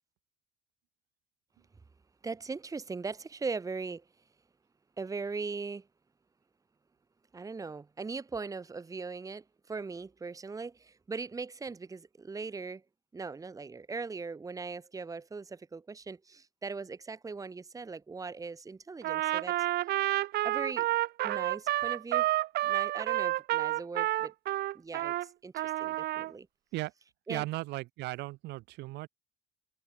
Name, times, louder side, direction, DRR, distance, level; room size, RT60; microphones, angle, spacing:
voice 1, 2.2-4.0 5.0-5.9 7.3-12.8 13.1-19.6 20.4-20.9 21.2-22.3 22.6-24.3 24.7-26.5 27.3-27.4, right 4 dB, 20° right, 1.4 m, -39 dB
Trumpet, 19.0-25.3 25.5-26.3, right 16 dB, 70° right, 1.0 m, -30 dB
voice 2, 27.3-29.1, right 19 dB, 85° right, 2.7 m, -36 dB
cardioid pair, 110°, 17 cm